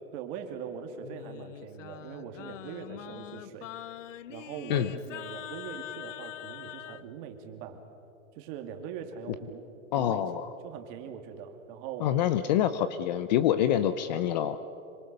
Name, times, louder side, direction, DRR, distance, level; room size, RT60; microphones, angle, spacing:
voice 1, 0.1-3.9 4.3-7.8 8.3-9.6 9.9-12.1, right 7 dB, 35° right, 5 dB, 2.5 m, -42 dB
Singing, 1.0-7.0, left 12 dB, 65° left, 0.8 m, -43 dB
voice 2, 9.9-10.5 12.0-14.6, left 11 dB, 35° left, 13 dB, 0.6 m, -26 dB
26.0 x 24.5 x 6.8 m, 2.8 s
hypercardioid pair, 155°, 41 cm